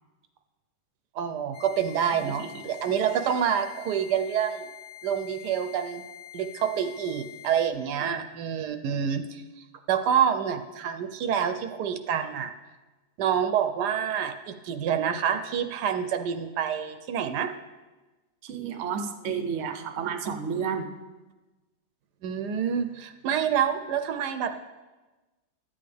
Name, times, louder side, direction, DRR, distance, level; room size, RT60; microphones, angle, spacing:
voice 1, 1.1-4.6 5.0-6.0 6.3-9.4 9.9-12.5 13.2-17.5 22.2-24.5, right 8 dB, 80° right, 8 dB, 1.2 m, -27 dB
sound 1, 1.5-7.7, left 13 dB, 85° left, 1.6 m, -46 dB
voice 2, 18.4-20.9, right 6 dB, 55° right, 7 dB, 0.9 m, -31 dB
12.5 x 8.6 x 3.4 m, 1.2 s
omnidirectional pair, 1.8 m